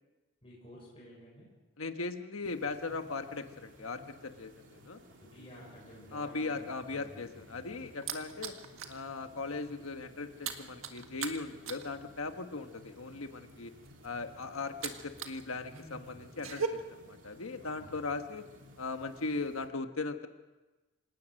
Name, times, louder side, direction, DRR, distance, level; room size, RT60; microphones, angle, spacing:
voice 1, 0.4-1.5 5.2-7.9 15.6-16.3 17.6-18.3, equal, 25° left, -4 dB, 7.0 m, -53 dB
voice 2, 1.8-5.0 6.1-8.5 8.9-13.7 14.0-18.4 18.8-20.3, left 3 dB, 85° left, 7 dB, 1.4 m, -38 dB
sound 1, 2.4-19.7, equal, 60° right, 3.3 m, -57 dB
sound 2, 7.2-9.0 9.4-9.6 9.8-15.4 15.7-16.7, right 7 dB, 75° right, 1.7 m, -40 dB
26.0 x 18.0 x 6.5 m, 1.2 s
head